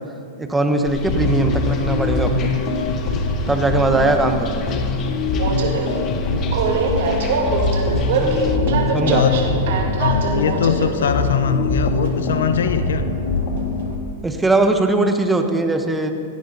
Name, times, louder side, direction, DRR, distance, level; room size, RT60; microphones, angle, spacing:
voice 1, 0.4-2.5 3.5-4.8 8.2-8.4 8.9-9.2 14.2-16.1, right 2 dB, 10° right, 6 dB, 1.2 m, -20 dB
sound 1, 0.8-8.6, left 4 dB, 30° left, 1.3 m, -32 dB
sound 2, 1.1-13.9, left 3 dB, 50° left, 2.8 m, -23 dB
Train, 5.3-14.0, right 3 dB, 70° right, 2.6 m, -24 dB
voice 2, 8.4-9.5 10.0-13.0, left 7 dB, 90° left, 10 dB, 1.0 m, -22 dB
17.0 x 16.0 x 4.1 m, 2.4 s
hypercardioid pair, 140°, 0 cm